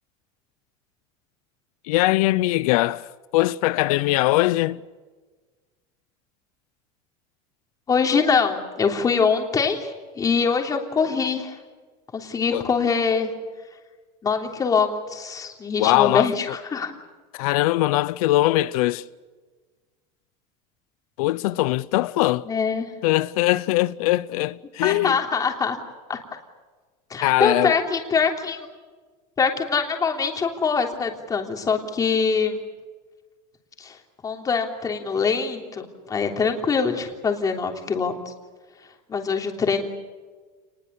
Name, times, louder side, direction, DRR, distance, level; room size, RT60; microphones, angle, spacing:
voice 1, 1.8-4.8 12.5-12.6 15.8-16.3 17.3-19.0 21.2-22.5 23.0-25.2 27.2-27.8, left 18 dB, 90° left, 0.7 m, -21 dB
voice 2, 7.9-11.6 12.1-13.3 14.2-16.9 22.5-22.9 24.8-25.8 26.1-26.2 27.1-28.7 29.4-32.6 33.8-34.0 34.2-38.1 39.1-39.9, left 5 dB, 20° left, 3.3 m, -23 dB
29.5 x 20.5 x 8.3 m
cardioid pair, 160°, 18 cm